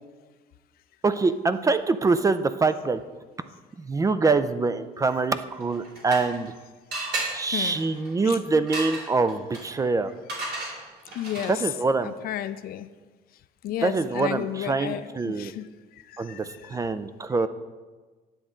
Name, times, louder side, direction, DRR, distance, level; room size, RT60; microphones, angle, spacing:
voice 1, 1.0-3.0 3.8-6.5 7.3-10.1 11.5-12.2 13.8-15.5 16.2-17.5, right 3 dB, 20° right, 12 dB, 0.4 m, -24 dB
sound 1, 5.6-6.5 6.9-11.7, right 2 dB, 75° right, 2.7 m, -35 dB
voice 2, 7.0-7.9 8.2-8.4 11.1-11.7 12.0-12.9 13.6-16.9, left 11 dB, 60° left, 13 dB, 0.4 m, -34 dB
10.0 x 7.2 x 3.7 m, 1.3 s
cardioid pair, 110°, 17 cm